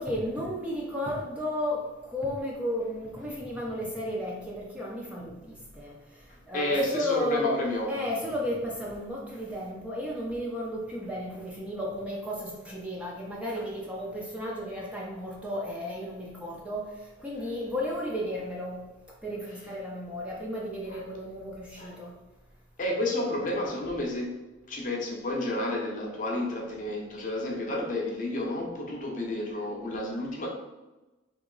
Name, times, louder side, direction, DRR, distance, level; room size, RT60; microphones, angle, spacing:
voice 1, 0.0-7.5 7.9-18.8 19.2-22.1, left 1 dB, 5° right, -4 dB, 0.5 m, -34 dB
voice 2, 6.3-7.9 20.9-21.0 21.8-22.0 22.8-24.4 24.7-30.5, left 1 dB, 45° left, -1 dB, 0.7 m, -31 dB
3.0 x 2.7 x 3.8 m, 1.1 s
head